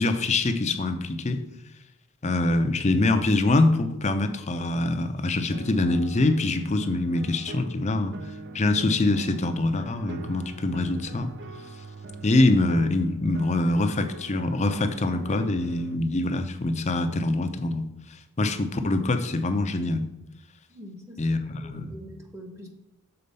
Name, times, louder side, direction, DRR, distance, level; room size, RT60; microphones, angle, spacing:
voice 1, 0.0-1.4 2.2-8.1 8.5-11.3 12.2-20.1 21.2-22.0, left 2 dB, 30° left, 8 dB, 0.6 m, -24 dB
sound 1, 5.5-16.0, right 3 dB, 50° right, 0.4 m, -42 dB
voice 2, 20.7-21.2 21.6-22.7, equal, 15° right, 2 dB, 0.9 m, -44 dB
6.8 x 4.2 x 5.3 m, 0.93 s
head